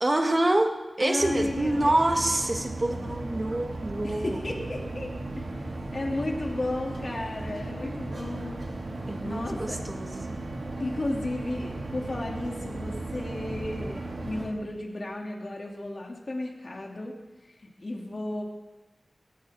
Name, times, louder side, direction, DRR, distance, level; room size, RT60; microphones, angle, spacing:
voice 1, 0.0-4.4 9.1-10.4, right 1 dB, 35° right, 4 dB, 1.8 m, -26 dB
voice 2, 1.0-1.9 4.0-5.4 5.9-8.6 9.2-9.8 10.8-17.1 17.8-18.4, left 2 dB, 50° left, -1 dB, 2.7 m, -33 dB
sound 1, 1.2-14.5, right 2 dB, 90° right, 3.1 m, -36 dB
20.0 x 17.5 x 3.7 m, 1.1 s
wide cardioid pair, 95°, 0 cm